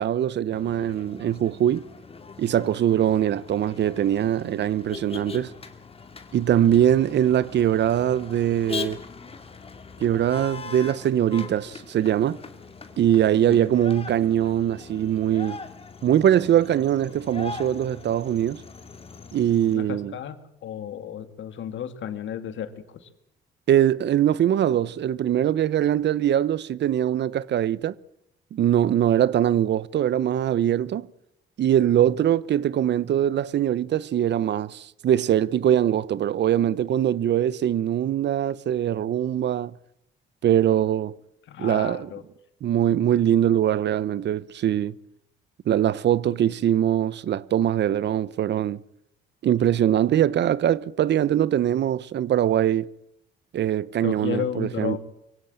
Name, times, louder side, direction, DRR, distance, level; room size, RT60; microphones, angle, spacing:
voice 1, 0.0-1.8 2.4-5.5 6.3-9.0 10.0-12.4 13.0-15.6 16.0-18.6 19.3-20.1 23.7-28.0 28.5-31.1 31.6-39.7 40.4-41.1 41.6-42.1 42.6-44.9 45.7-48.8 49.4-52.9 53.5-55.0, right 10 dB, 60° right, 0.8 m, -22 dB
Motor vehicle (road), 0.5-19.7, left 4 dB, 30° left, 2.6 m, -40 dB
voice 2, 19.7-23.1 41.5-42.2 54.0-55.0, left 9 dB, 70° left, 2.4 m, -33 dB
24.0 x 16.5 x 8.9 m
cardioid pair, 90°, 20 cm